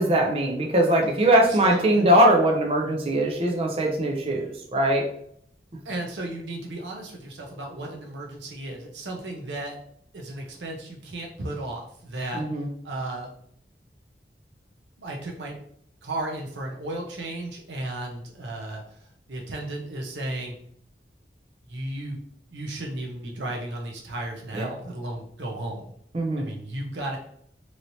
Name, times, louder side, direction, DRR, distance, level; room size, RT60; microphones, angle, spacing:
voice 1, 0.0-5.0 12.3-12.7 24.5-24.7 26.1-26.5, right 1 dB, 35° right, 0 dB, 0.4 m, -21 dB
voice 2, 1.5-2.1 5.8-9.8 10.1-12.4 12.8-13.3 15.0-15.6 16.0-20.6 21.7-22.2 22.5-25.9 26.4-27.2, right 1 dB, 90° right, 0 dB, 0.7 m, -34 dB
3.0 x 2.8 x 2.7 m, 0.67 s
head